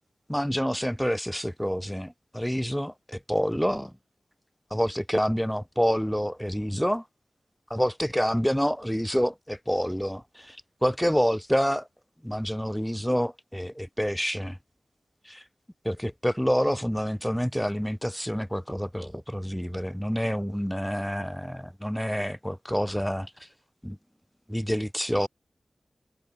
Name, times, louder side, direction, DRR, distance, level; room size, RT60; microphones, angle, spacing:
voice 1, 0.3-3.9 4.7-7.0 7.7-11.9 12.2-14.6 15.2-15.4 15.8-23.5 23.8-24.0 24.5-25.3, equal, 5° left, 4.4 m, -28 dB
wide cardioid pair, 65°, 0 cm